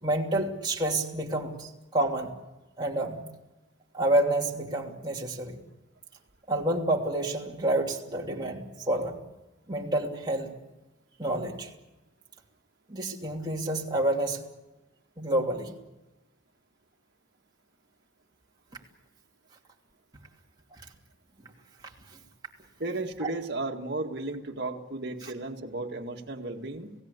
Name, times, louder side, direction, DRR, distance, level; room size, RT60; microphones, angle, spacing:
voice 1, 0.0-2.3 2.8-3.2 3.9-5.6 6.5-9.2 9.7-10.5 11.2-11.7 12.9-14.4 15.2-15.7 23.2-23.3 25.2-25.3, right 1 dB, 20° right, -1 dB, 2.9 m, -28 dB
voice 2, 22.8-26.9, right 2 dB, 55° right, 2 dB, 2.0 m, -34 dB
30.0 x 17.0 x 8.3 m, 1.1 s
head